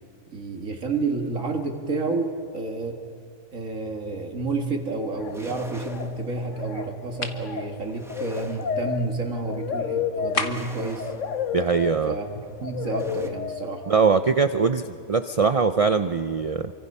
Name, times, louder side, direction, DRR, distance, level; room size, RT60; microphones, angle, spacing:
voice 1, 0.3-3.0 3.5-11.1 12.1-13.9, right 3 dB, 70° right, 2 dB, 2.2 m, -30 dB
sound 1, 5.1-5.5 5.8-6.2 6.5-14.1, left 7 dB, 65° left, 1.3 m, -32 dB
sound 2, 5.2-13.3, equal, ahead, 1.5 m, -47 dB
sound 3, 7.2-7.5 10.3-10.8, left 3 dB, 40° left, 1.4 m, -29 dB
voice 2, 11.5-12.1 13.9-16.7, right 5 dB, 50° right, 10 dB, 0.4 m, -22 dB
28.0 x 24.5 x 5.5 m, 2.5 s
omnidirectional pair, 1.4 m